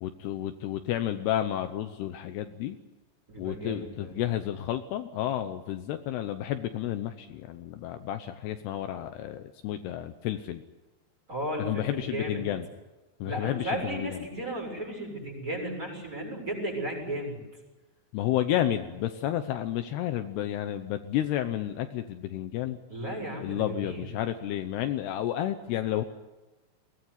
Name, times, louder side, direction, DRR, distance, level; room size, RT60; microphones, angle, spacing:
voice 1, 0.0-2.8 3.4-10.6 11.6-12.7 13.2-14.2 18.1-22.8 23.4-26.0, left 12 dB, 75° left, 8 dB, 2.8 m, -31 dB
voice 2, 3.3-4.1 11.3-12.5 13.3-17.4 22.9-24.1, right 1 dB, 20° right, 0 dB, 7.4 m, -34 dB
22.5 x 18.5 x 9.6 m, 1.1 s
omnidirectional pair, 5.0 m